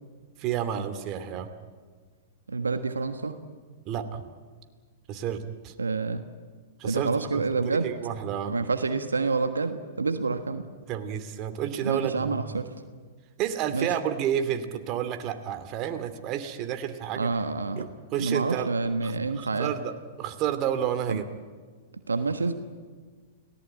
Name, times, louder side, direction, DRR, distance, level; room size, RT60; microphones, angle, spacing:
voice 1, 0.4-1.5 3.9-4.3 5.1-5.7 6.8-8.5 10.9-12.4 13.4-17.3 17.8-18.7 19.0-19.9 20.2-21.2, right 9 dB, 40° right, 9 dB, 2.6 m, -30 dB
voice 2, 2.5-3.4 5.8-6.2 6.8-7.9 8.5-10.6 11.8-12.7 13.7-14.0 17.1-17.9 18.2-19.7 21.1-21.2 22.1-22.5, right 4 dB, 85° right, 8 dB, 1.4 m, -28 dB
29.5 x 18.5 x 8.9 m, 1.5 s
hypercardioid pair, 105°, 0 cm